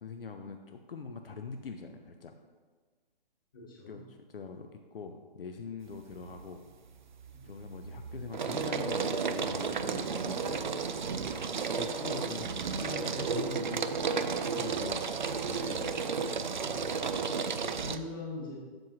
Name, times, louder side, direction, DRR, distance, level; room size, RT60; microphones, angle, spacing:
voice 1, 0.0-2.3 3.9-6.6 7.4-10.8 11.3-15.0 15.5-16.0, left 5 dB, 70° left, 5 dB, 0.7 m, -43 dB
voice 2, 3.5-4.1 7.3-7.4 11.2-11.5 14.5-14.9 16.6-17.2 17.6-18.6, left 2 dB, 20° left, -4 dB, 1.4 m, -44 dB
sound 1, 5.9-6.5 6.8-18.0, right 5 dB, 55° right, 0.4 m, -33 dB
7.8 x 7.2 x 3.0 m, 1.4 s
hypercardioid pair, 180°, 29 cm